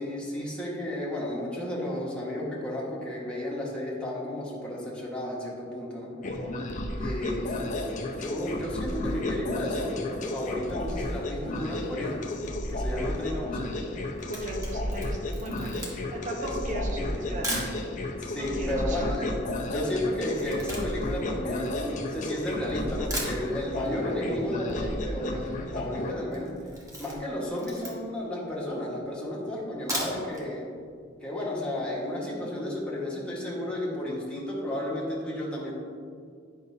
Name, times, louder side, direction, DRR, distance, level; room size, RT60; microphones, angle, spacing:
voice 1, 0.0-6.1 7.0-12.2 12.7-13.8 16.4-16.5 16.9-17.5 18.2-26.5 27.0-30.7 31.2-35.7, left 1 dB, 5° left, -6 dB, 1.5 m, -33 dB
sound 1, 6.2-26.1, left 1 dB, 40° left, 0.6 m, -33 dB
Camera, 14.1-17.8 18.5-18.6 18.7-22.4 22.8-22.9 23.1-24.0 24.2-24.3 24.6-24.7 24.9-25.3 25.7-25.9 26.3-28.3 28.8-28.9 29.7-30.5 30.8-30.9 31.3-31.4, equal, 15° right, 1.2 m, -37 dB
voice 2, 14.3-15.8 16.1-17.7 18.0-19.1, right 1 dB, 40° right, -1 dB, 1.0 m, -37 dB
9.6 x 5.5 x 2.7 m, 2.2 s
head